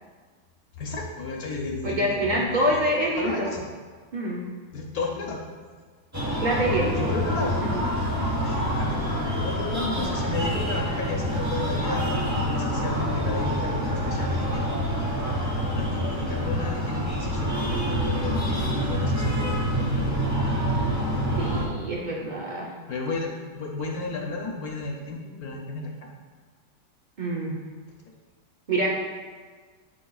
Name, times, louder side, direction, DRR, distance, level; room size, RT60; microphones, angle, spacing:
voice 1, 0.8-2.9 3.2-3.6 4.7-5.4 6.9-7.6 8.4-14.7 15.6-20.6 22.9-26.1, left 3 dB, 65° left, 0 dB, 1.1 m, -33 dB
voice 2, 1.8-3.5 4.1-4.5 6.4-7.1 7.6-7.7 8.2-8.3 9.9-10.1 21.4-22.7 27.2-27.6 28.7-28.9, right 1 dB, 65° right, -3 dB, 0.4 m, -26 dB
Breathing, 6.1-21.7, equal, 15° right, 0.7 m, -26 dB
12.5 x 5.2 x 2.3 m, 1.5 s
omnidirectional pair, 1.9 m